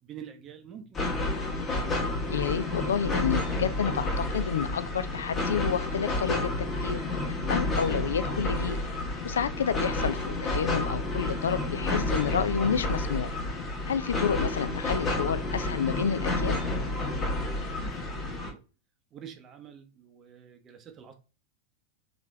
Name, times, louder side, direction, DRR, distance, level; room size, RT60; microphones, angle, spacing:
voice 1, 0.0-1.1 17.6-18.6 19.1-21.1, right 8 dB, 30° right, 0.7 m, -47 dB
sound 1, 0.9-18.5, left 2 dB, 20° left, 1.1 m, -30 dB
voice 2, 2.3-6.5 6.8-7.0 7.5-8.8 9.2-13.3 13.9-16.6, left 7 dB, 65° left, 0.3 m, -29 dB
3.8 x 3.1 x 2.2 m
figure-of-eight pair, 90°, 0 cm